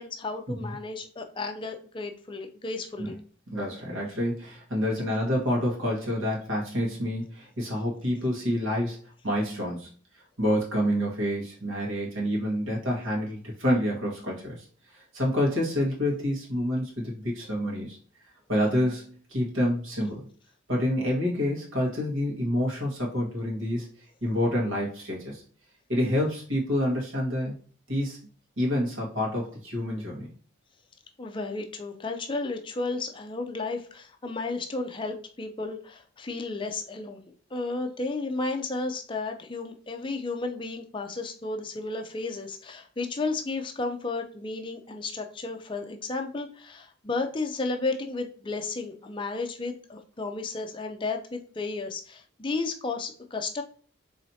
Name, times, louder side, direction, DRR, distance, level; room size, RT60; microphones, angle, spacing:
voice 1, 0.0-3.2 31.2-37.2 37.5-53.6, left 3 dB, 25° left, 4 dB, 0.4 m, -33 dB
voice 2, 3.5-9.0 9.2-9.9 10.4-14.6 14.9-18.0 18.5-20.2 20.7-23.9 24.2-25.4 25.9-27.5 27.9-28.2 28.6-30.3, equal, 75° right, -3 dB, 1.6 m, -28 dB
4.3 x 3.1 x 2.8 m, 0.43 s
head